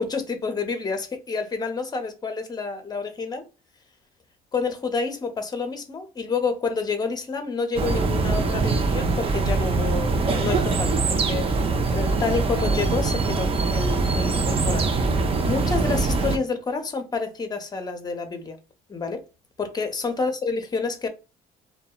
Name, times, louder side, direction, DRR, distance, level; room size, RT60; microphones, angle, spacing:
voice 1, 0.0-3.4 4.5-14.9 15.4-18.6 18.9-19.2 19.6-21.1, left 4 dB, 25° left, 0.6 m, -29 dB
sound 1, 7.8-16.4, right 3 dB, 35° right, 0.4 m, -23 dB
2.7 x 2.1 x 2.3 m
cardioid pair, 110°, 17 cm